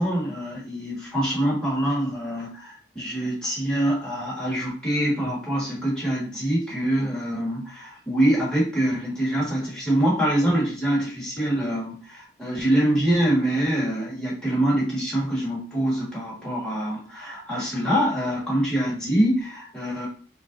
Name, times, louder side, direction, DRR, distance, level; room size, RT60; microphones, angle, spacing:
voice 1, 0.0-20.1, right 1 dB, 5° left, -6 dB, 1.5 m, -25 dB
3.6 x 2.6 x 3.8 m, 0.41 s
head